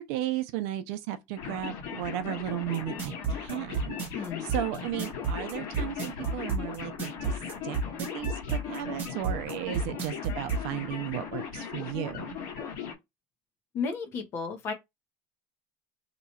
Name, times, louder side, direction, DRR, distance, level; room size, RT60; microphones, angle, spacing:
voice 1, 0.0-4.0 4.5-7.3 7.6-7.8 8.1-12.4, right 13 dB, 70° right, 0.6 m, -34 dB
sound 1, 1.4-12.9, left 7 dB, 55° left, 1.4 m, -38 dB
sound 2, 2.7-10.6, right 4 dB, 25° right, 0.9 m, -31 dB
voice 2, 4.1-4.5 13.7-14.7, left 5 dB, 35° left, 0.8 m, -33 dB
2.9 x 2.3 x 4.2 m
cardioid pair, 175°, 8 cm